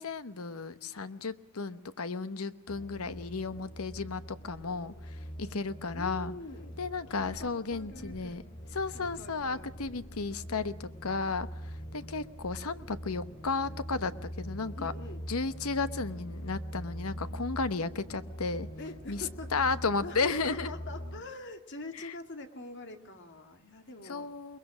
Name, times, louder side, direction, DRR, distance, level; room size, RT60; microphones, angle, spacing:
voice 1, 0.0-6.3 6.8-8.4 8.8-11.5 11.9-14.9 15.3-18.7 19.1-19.2 19.5-20.7 24.1-24.6, left 4 dB, 80° left, 13 dB, 1.0 m, -34 dB
sound 1, 2.7-21.2, equal, 25° left, 2.5 m, -43 dB
voice 2, 5.8-6.8 7.2-8.4 8.9-9.7 14.8-15.3 18.8-19.6 20.0-24.3, left 2 dB, 55° left, 6 dB, 2.2 m, -45 dB
22.5 x 21.5 x 6.2 m, 0.91 s
head